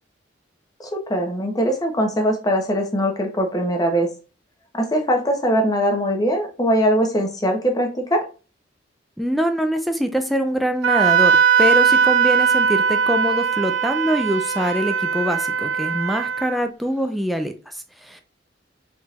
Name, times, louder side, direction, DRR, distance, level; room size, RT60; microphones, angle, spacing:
voice 1, 0.8-4.1 4.7-8.2, equal, 20° left, 0.9 m, -21 dB
voice 2, 9.2-18.2, equal, ahead, 0.3 m, -24 dB
Wind instrument woodwind instrument, 10.8-16.6, right 7 dB, 70° right, 0.6 m, -19 dB
4.2 x 3.7 x 2.4 m
head